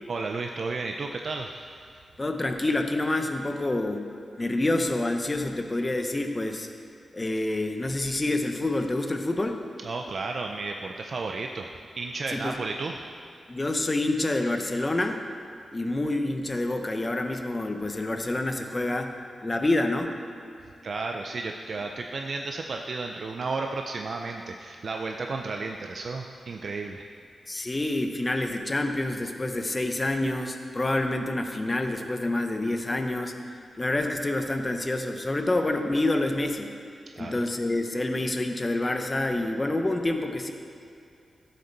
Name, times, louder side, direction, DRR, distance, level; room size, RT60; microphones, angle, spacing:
voice 1, 0.1-1.6 9.8-11.7 12.0-12.9 20.8-27.1 37.2-37.3, right 3 dB, 50° right, 3 dB, 0.4 m, -33 dB
voice 2, 2.2-6.7 7.1-9.6 12.3-12.6 13.5-15.2 15.7-20.1 27.5-33.3 33.8-36.7 37.2-40.5, left 2 dB, 20° left, 5 dB, 0.6 m, -27 dB
15.0 x 6.6 x 4.0 m, 2.4 s
wide cardioid pair, 170°, 0 cm